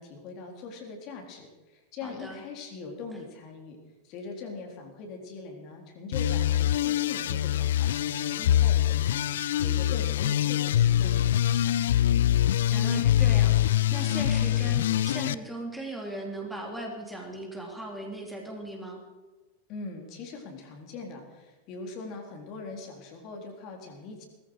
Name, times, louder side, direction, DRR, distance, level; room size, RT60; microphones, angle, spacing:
voice 1, 0.0-3.8 4.0-11.2 19.7-24.3, left 4 dB, 40° left, 2 dB, 4.0 m, -41 dB
voice 2, 2.0-2.4 12.7-19.0, right 1 dB, ahead, 0 dB, 3.1 m, -38 dB
sound 1, 6.1-15.3, left 11 dB, 60° left, 0.5 m, -24 dB
20.0 x 14.5 x 5.0 m, 1.2 s
figure-of-eight pair, 90°, 0 cm